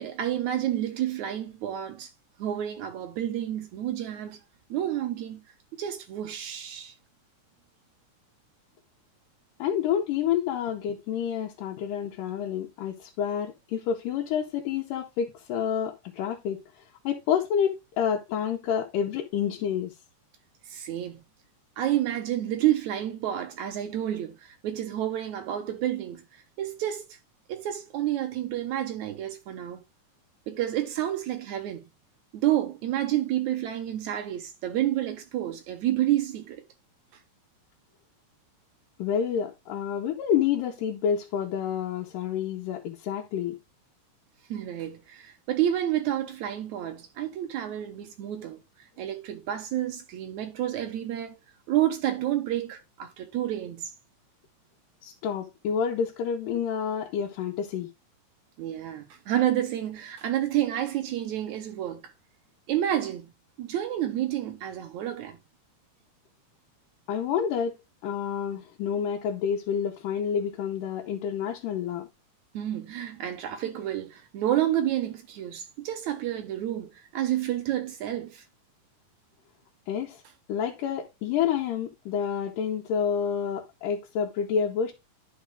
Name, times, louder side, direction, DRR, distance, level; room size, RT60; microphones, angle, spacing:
voice 1, 0.0-2.1 2.4-4.4 4.7-5.4 5.7-6.9 20.7-21.2 21.8-27.1 27.5-29.8 30.5-31.8 32.3-36.6 44.5-48.6 49.0-51.4 51.7-53.9 58.6-62.1 62.7-63.3 63.6-65.4 72.5-78.4, right 12 dB, 70° right, 1.9 m, -29 dB
voice 2, 9.6-16.6 17.0-19.9 39.0-43.6 55.0-57.9 67.1-67.8 68.0-72.1 79.9-80.2 80.5-84.9, left 8 dB, 80° left, 2.4 m, -28 dB
11.5 x 4.2 x 3.4 m
omnidirectional pair, 4.0 m